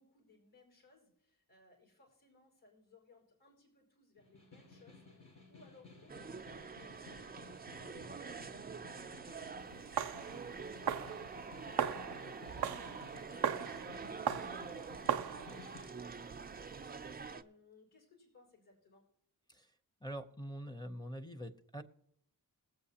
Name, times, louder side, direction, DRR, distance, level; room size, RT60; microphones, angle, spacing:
voice 1, 0.0-19.0, left 3 dB, 70° left, 1 dB, 4.9 m, -65 dB
Snare drum, 4.2-16.0, left 3 dB, 50° left, 4.9 m, -56 dB
sound 1, 6.1-17.4, right 5 dB, 25° right, 0.4 m, -46 dB
sound 2, 9.6-17.3, right 9 dB, 75° right, 0.6 m, -39 dB
voice 2, 20.0-21.8, equal, 10° left, 8 dB, 0.8 m, -44 dB
21.0 x 8.1 x 2.9 m, 0.78 s
wide cardioid pair, 70°, 38 cm